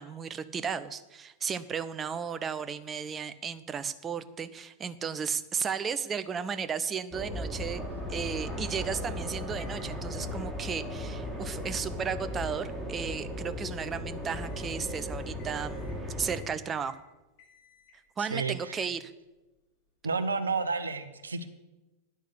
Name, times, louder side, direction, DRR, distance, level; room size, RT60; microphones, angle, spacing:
voice 1, 0.0-15.9 16.2-17.0 18.2-19.1, right 6 dB, 20° right, 13 dB, 0.6 m, -34 dB
sound 1, 7.1-16.4, equal, 5° right, 2.0 m, -37 dB
sound 2, 9.4-15.1 15.4-16.0 16.4-17.0 17.4-18.0 18.4-19.0, left 5 dB, 45° left, 3.8 m, -51 dB
voice 2, 18.2-18.8 20.0-21.5, right 4 dB, 75° right, 10 dB, 0.8 m, -31 dB
10.0 x 6.5 x 8.2 m, 1.1 s
figure-of-eight pair, 90°, 0 cm